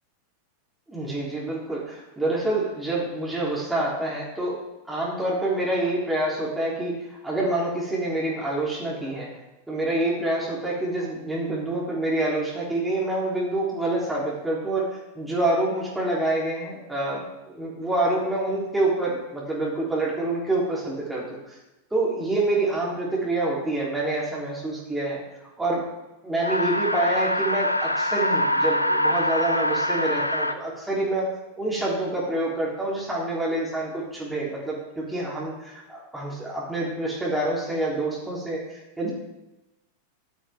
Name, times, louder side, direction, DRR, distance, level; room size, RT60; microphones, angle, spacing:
voice 1, 0.9-4.6 4.9-9.3 9.7-21.6 21.9-25.2 25.6-25.8 26.2-31.3 31.6-39.1, right 2 dB, 5° right, -6 dB, 3.5 m, -27 dB
sound 1, 26.4-30.5, left 1 dB, 85° left, 0.6 m, -24 dB
13.0 x 11.5 x 3.6 m, 1.0 s
figure-of-eight pair, 90°, 0 cm